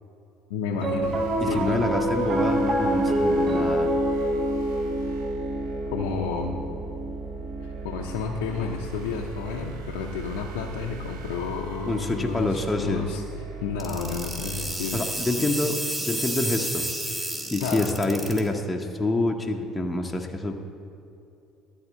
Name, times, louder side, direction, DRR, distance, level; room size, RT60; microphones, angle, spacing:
voice 1, 0.5-1.2 1.5-1.9 5.9-6.6 7.6-13.2 13.6-15.0 17.6-17.9, left 5 dB, 70° left, -1 dB, 0.6 m, -31 dB
Piano, 0.7-11.2, right 1 dB, 40° right, 1.0 m, -28 dB
sound 1, 1.0-14.7, right 8 dB, 70° right, 0.7 m, -40 dB
voice 2, 1.4-3.9 11.9-13.1 14.9-16.9 17.3-20.5, left 2 dB, 15° left, 1 dB, 0.8 m, -27 dB
sound 2, 13.8-18.4, right 1 dB, 20° right, 1.6 m, -31 dB
12.5 x 4.3 x 7.3 m, 2.8 s
figure-of-eight pair, 60°, 0 cm